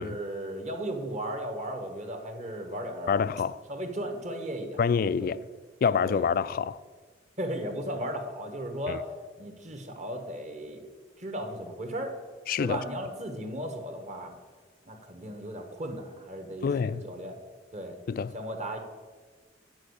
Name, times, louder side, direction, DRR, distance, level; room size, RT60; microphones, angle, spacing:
voice 1, 0.0-3.2 3.7-4.8 5.2-5.3 6.0-6.3 7.4-9.1 9.4-10.8 11.2-12.1 12.6-14.3 14.9-17.4 17.7-18.0 18.3-18.8, right 1 dB, 40° right, 1.3 m, -36 dB
voice 2, 3.1-3.6 4.8-5.4 5.8-6.8 8.9-9.0 12.5-12.8 16.6-17.1 18.1-18.4, left 6 dB, 50° left, 0.3 m, -27 dB
9.0 x 5.5 x 8.0 m
head